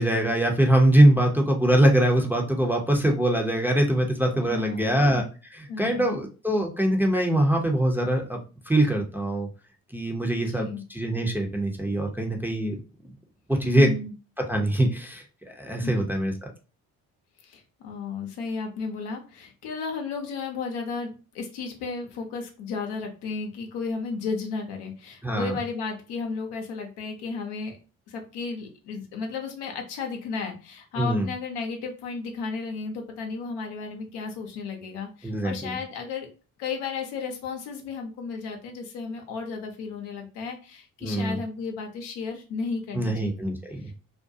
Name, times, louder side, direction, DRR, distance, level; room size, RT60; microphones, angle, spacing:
voice 1, 0.0-5.2 5.5-8.4 8.7-9.5 9.9-12.8 13.5-13.9 14.5-16.3 25.2-25.6 31.0-31.3 35.2-35.8 41.0-41.4 42.9-43.8, right 1 dB, 5° right, 1 dB, 0.6 m, -23 dB
voice 2, 4.4-5.0 5.7-6.2 10.3-10.8 13.6-14.1 15.8-16.1 17.4-27.8 28.1-36.3 36.6-43.5 43.8-43.9, left 4 dB, 65° left, 3 dB, 0.8 m, -34 dB
2.4 x 2.2 x 2.6 m, 0.33 s
hypercardioid pair, 50°, 43 cm